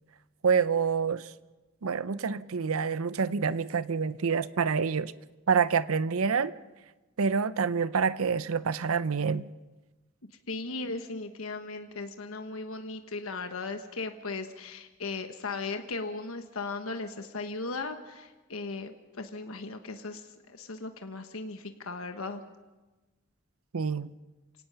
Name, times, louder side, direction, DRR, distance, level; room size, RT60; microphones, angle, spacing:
voice 1, 0.4-1.3 1.8-5.1 5.5-6.5 7.2-9.5 23.7-24.1, right 5 dB, 85° right, 15 dB, 0.6 m, -27 dB
voice 2, 10.5-22.4, left 3 dB, 85° left, 7 dB, 1.3 m, -37 dB
28.0 x 17.5 x 5.7 m, 1.2 s
head